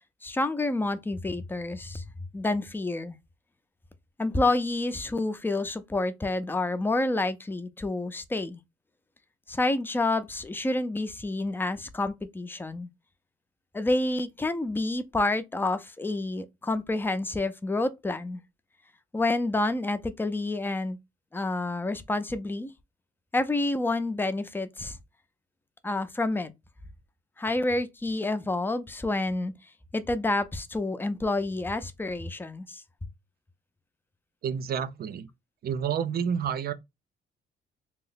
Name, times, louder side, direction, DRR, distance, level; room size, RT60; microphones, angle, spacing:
voice 1, 0.2-2.0 2.3-3.2 4.2-8.6 9.5-12.9 13.7-18.4 19.1-21.0 21.3-22.7 23.3-25.0 25.8-26.5 27.4-29.5 29.9-32.8, left 2 dB, 10° left, 0.4 m, -28 dB
voice 2, 34.4-35.3 35.6-36.7, right 7 dB, 50° right, 0.5 m, -29 dB
2.9 x 2.0 x 3.9 m
cardioid pair, 90°, 20 cm